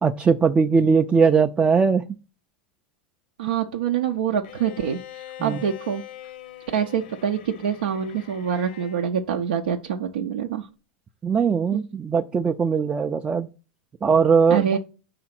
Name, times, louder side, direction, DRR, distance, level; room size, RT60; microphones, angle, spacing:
voice 1, 0.0-2.1 5.4-5.6 11.2-13.5 14.0-14.7, right 5 dB, 20° right, 0.3 m, -20 dB
voice 2, 3.4-6.0 6.7-10.7 11.7-11.8 14.5-14.8, right 8 dB, 85° right, 0.5 m, -25 dB
Bowed string instrument, 4.4-9.1, left 12 dB, 80° left, 0.6 m, -43 dB
5.0 x 3.8 x 5.8 m
hypercardioid pair, 110°, 5 cm